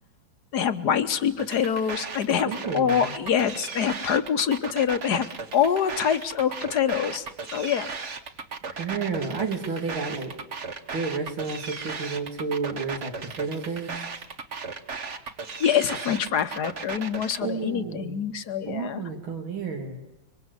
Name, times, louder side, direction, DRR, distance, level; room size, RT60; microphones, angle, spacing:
voice 1, 0.5-5.3 5.5-7.3 7.5-7.9 15.6-19.0, left 8 dB, 55° left, 12 dB, 1.5 m, -25 dB
sound 1, 1.4-17.4, right 4 dB, 40° right, 1.5 m, -36 dB
voice 2, 2.4-3.1 8.7-10.3 10.9-14.0 17.4-18.2 18.7-20.0, right 4 dB, 70° right, 2 dB, 3.4 m, -31 dB
26.0 x 24.0 x 8.1 m, 0.93 s
omnidirectional pair, 2.3 m